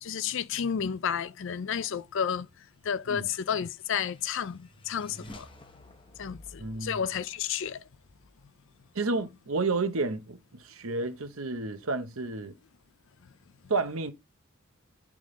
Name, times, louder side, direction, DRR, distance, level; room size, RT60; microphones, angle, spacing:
voice 1, 0.0-2.5 2.8-5.5 6.2-7.8, left 7 dB, 60° left, 0.4 m, -31 dB
sound 1, 3.2-8.8, left 1 dB, 25° left, 0.8 m, -52 dB
voice 2, 6.6-7.0 8.9-12.5 13.7-14.1, right 3 dB, 70° right, 0.9 m, -31 dB
8.1 x 3.6 x 3.8 m
head